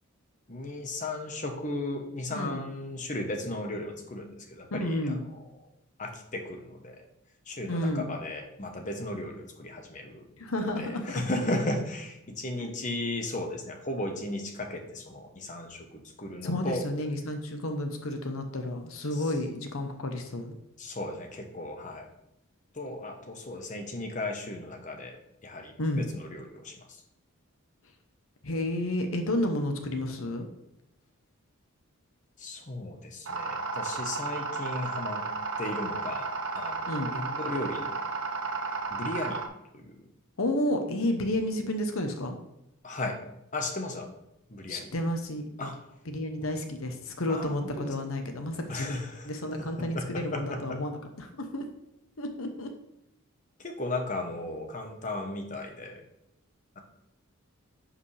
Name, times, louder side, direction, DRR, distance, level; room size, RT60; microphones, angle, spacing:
voice 1, 0.5-5.2 6.0-7.1 7.5-10.3 10.8-16.8 19.1-19.2 20.8-22.1 22.7-27.0 32.4-35.3 35.6-36.3 36.5-38.0 38.9-39.4 39.7-40.1 42.8-43.2 43.5-44.1 44.5-44.9 45.6-45.7 47.3-47.9 48.7-49.3 49.6-50.8 53.6-56.0 56.7-56.8, left 2 dB, 35° left, 4 dB, 1.1 m, -35 dB
voice 2, 2.3-2.7 4.7-5.2 7.7-8.1 10.4-11.3 12.6-12.7 16.4-20.6 25.8-26.1 28.4-30.5 36.9-37.1 40.4-42.4 44.7-45.7 46.1-49.0 49.2-51.7 52.2-52.7, left 1 dB, 70° left, 5 dB, 0.9 m, -31 dB
sound 1, 33.3-39.5, right 3 dB, 60° right, 0.8 m, -33 dB
10.5 x 5.1 x 3.3 m, 0.84 s
head